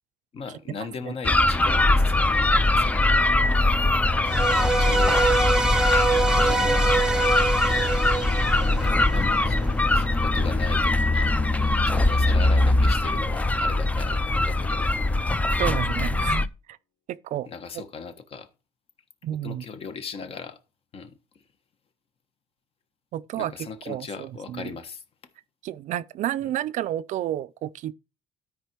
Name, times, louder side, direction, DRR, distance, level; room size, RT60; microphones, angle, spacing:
voice 1, 0.3-3.1 4.3-5.2 6.3-7.0 8.5-9.6 9.9-15.0 17.4-18.5 19.4-20.6 20.9-21.2 23.3-25.0 26.4-26.5, left 5 dB, 40° left, 1.3 m, -38 dB
sound 1, 1.2-16.5, left 2 dB, 10° left, 0.5 m, -22 dB
sound 2, 4.2-9.5, right 4 dB, 5° right, 0.9 m, -25 dB
Drum, 4.5-15.5, left 6 dB, 80° left, 2.8 m, -43 dB
voice 2, 15.6-16.8 17.1-17.5 19.2-19.6 23.1-23.5 23.9-24.7 25.6-27.9, right 12 dB, 60° right, 0.5 m, -30 dB
12.5 x 5.0 x 4.5 m
cardioid pair, 145°, 14 cm